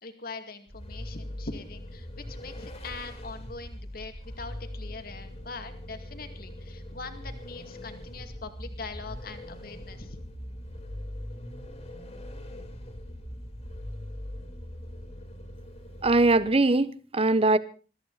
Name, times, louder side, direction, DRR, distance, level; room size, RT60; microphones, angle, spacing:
voice 1, 0.0-10.2, left 3 dB, 55° left, 7 dB, 2.3 m, -42 dB
Vehicle, 0.7-16.6, left 1 dB, 35° left, 2.8 m, -41 dB
voice 2, 16.0-17.6, right 2 dB, 35° right, 16 dB, 0.9 m, -21 dB
22.0 x 14.0 x 4.1 m, 0.36 s
head